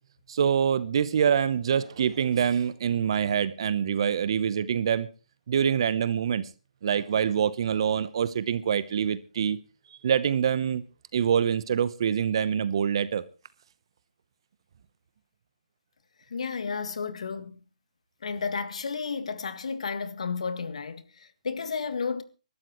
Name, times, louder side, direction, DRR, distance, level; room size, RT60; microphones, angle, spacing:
voice 1, 0.3-5.1 5.5-6.5 6.8-9.6 10.0-10.8 11.1-13.2, right 8 dB, 45° right, 0.8 m, -25 dB
voice 2, 16.3-17.6 18.2-22.2, left 5 dB, 60° left, 1.8 m, -32 dB
24.5 x 12.0 x 3.1 m
hypercardioid pair, 160°, 4 cm